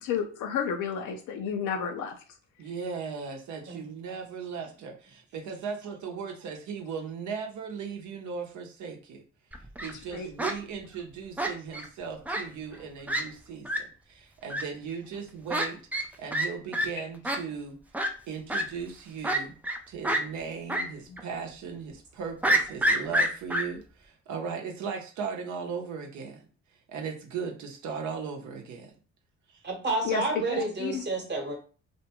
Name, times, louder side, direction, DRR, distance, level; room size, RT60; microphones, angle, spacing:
voice 1, 0.0-2.2 10.1-10.3 17.0-17.1 21.1-21.2 30.0-30.2 30.5-31.0, left 7 dB, 80° left, 5 dB, 0.6 m, -31 dB
voice 2, 2.6-9.2 9.8-17.8 18.3-19.5 19.9-26.4 26.9-28.9 29.5-29.6 30.1-30.7, right 6 dB, 70° right, 2 dB, 0.7 m, -37 dB
Fowl, 9.5-9.9 10.4-10.5 11.4-11.9 12.3-12.4 12.7-12.8 13.1-13.2 13.6-13.8 14.5-14.6 15.5-15.7 15.9-16.1 16.3-16.5 16.7-16.9 17.2-17.4 17.9-18.1 18.5-18.6 19.2-19.8 20.0-20.2 20.7-20.8 21.2-21.3 22.4-23.6, right 1 dB, 5° right, 0.3 m, -26 dB
voice 3, 29.6-31.5, right 2 dB, 35° right, 1 dB, 1.0 m, -30 dB
2.6 x 2.2 x 2.9 m, 0.37 s
cardioid pair, 90°, 30 cm